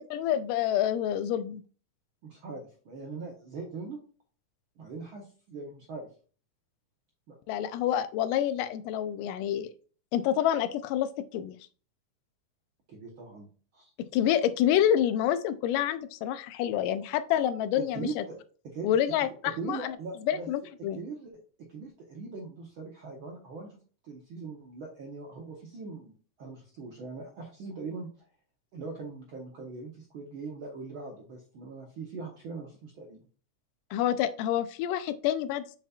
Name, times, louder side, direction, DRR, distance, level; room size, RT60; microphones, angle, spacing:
voice 1, 0.1-1.6 7.5-9.7 10.1-11.6 14.0-18.2 18.8-20.0 20.3-21.0 33.9-35.6, left 10 dB, 90° left, 12 dB, 2.2 m, -28 dB
voice 2, 2.2-4.0 4.8-6.1 7.3-7.4 12.9-13.5 13.7-13.9 17.7-18.4 18.6-19.2 19.6-20.5 21.0-23.7 24.0-28.1 28.7-33.2, right 4 dB, 70° right, 0 dB, 1.2 m, -41 dB
7.1 x 5.7 x 2.3 m, 0.40 s
omnidirectional pair, 3.7 m